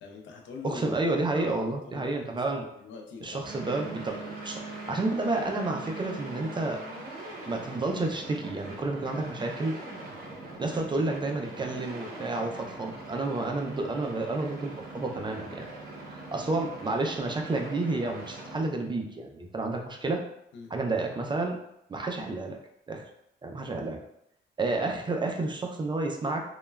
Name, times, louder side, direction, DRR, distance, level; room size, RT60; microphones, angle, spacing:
voice 1, 0.0-1.0 1.3-3.5 10.7-10.8 20.5-20.7 23.7-23.9, left 5 dB, 70° left, 2 dB, 0.5 m, -44 dB
voice 2, 0.6-2.6 3.2-6.8 7.5-9.7 10.6-15.7 16.1-20.2 20.7-21.6 21.9-22.6 22.9-23.1 23.4-24.0 24.6-26.4, right 2 dB, 25° right, 2 dB, 0.4 m, -30 dB
sound 1, 3.4-18.6, right 2 dB, 50° right, 0.8 m, -41 dB
3.0 x 2.2 x 2.2 m, 0.78 s
cardioid pair, 90°, 20 cm